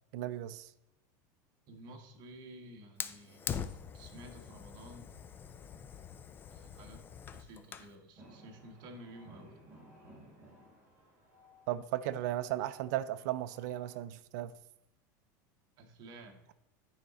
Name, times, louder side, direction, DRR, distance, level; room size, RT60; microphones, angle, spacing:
voice 1, 0.1-0.7 11.7-14.5, right 13 dB, 65° right, 0.5 m, -35 dB
voice 2, 1.7-3.6 3.9-5.1 6.5-9.6 15.8-16.5, right 1 dB, 45° right, 1.5 m, -52 dB
Fire, 3.0-8.0, left 7 dB, 20° left, 0.4 m, -43 dB
sound 1, 8.2-14.0, equal, 20° right, 3.1 m, -58 dB
9.3 x 5.0 x 4.1 m
supercardioid pair, 150°, 10 cm